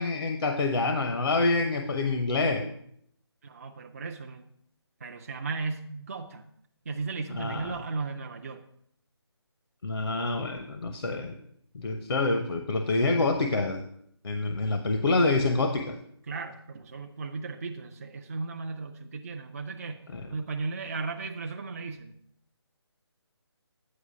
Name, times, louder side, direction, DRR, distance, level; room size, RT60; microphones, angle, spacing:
voice 1, 0.0-2.6 7.3-7.7 9.8-11.4 11.7-13.8 14.2-15.9 20.1-20.2, left 3 dB, 65° left, 5 dB, 0.8 m, -27 dB
voice 2, 3.4-4.4 5.0-6.4 6.9-8.6 16.3-20.0 20.3-22.1, right 4 dB, 35° right, 3 dB, 0.4 m, -36 dB
8.6 x 5.0 x 4.9 m, 0.70 s
figure-of-eight pair, 165°, 14 cm